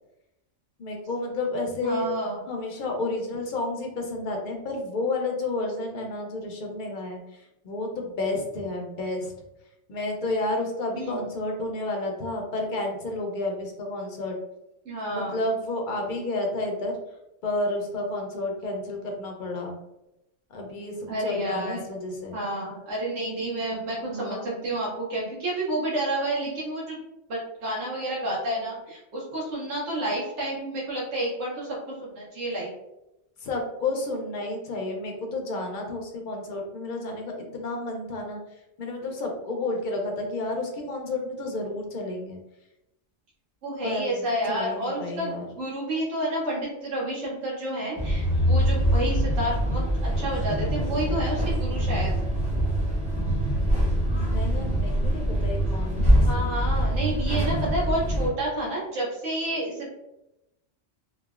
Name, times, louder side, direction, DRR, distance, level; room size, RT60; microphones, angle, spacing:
voice 1, 0.8-2.1 2.5-9.3 9.9-14.4 15.1-17.0 17.4-19.8 20.5-22.4 23.7-24.6 33.4-38.4 38.8-42.4 43.8-45.5 54.1-56.5, left 2 dB, 60° left, 1 dB, 0.5 m, -31 dB
voice 2, 1.8-2.4 10.9-11.2 14.8-15.4 21.1-21.8 22.3-27.0 27.3-32.7 43.6-52.1 56.2-59.9, right 1 dB, 75° right, -6 dB, 1.1 m, -30 dB
sound 1, 48.0-58.3, equal, 10° right, 0.5 m, -24 dB
3.0 x 2.1 x 2.3 m, 0.90 s
omnidirectional pair, 1.3 m